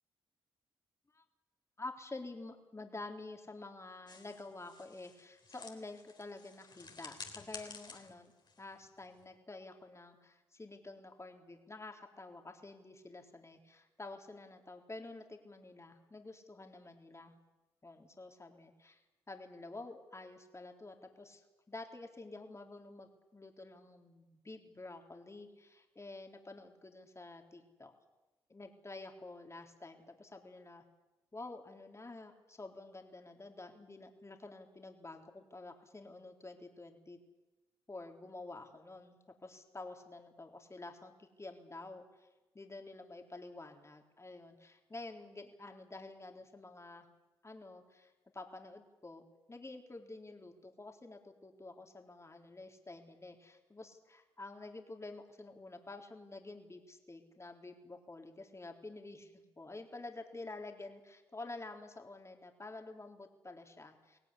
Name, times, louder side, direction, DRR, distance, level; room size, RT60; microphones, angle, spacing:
voice 1, 1.8-8.3 8.6-17.3 17.8-19.0 19.3-27.9 28.5-30.8 31.3-37.2 37.9-42.3 42.5-47.1 47.4-64.2, left 2 dB, 25° left, 3 dB, 3.9 m, -49 dB
sound 1, 4.1-9.4, left 4 dB, 45° left, 3.7 m, -52 dB
23.5 x 17.0 x 9.9 m, 1.1 s
supercardioid pair, 50°, 11 cm